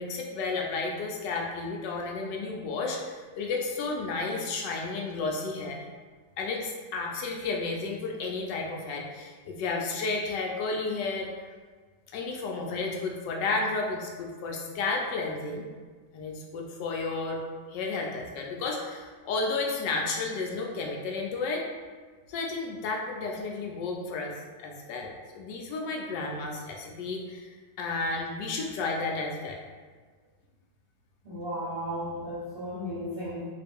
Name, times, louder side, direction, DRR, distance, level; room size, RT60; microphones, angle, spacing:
voice 1, 0.0-5.8 6.4-11.3 12.1-15.7 16.1-17.4 17.7-21.6 22.3-24.3 24.6-27.5 27.8-29.6, left 3 dB, 75° left, 0 dB, 1.2 m, -32 dB
voice 2, 31.2-33.5, equal, 50° right, -9 dB, 0.7 m, -35 dB
3.7 x 2.5 x 3.4 m, 1.5 s
omnidirectional pair, 2.0 m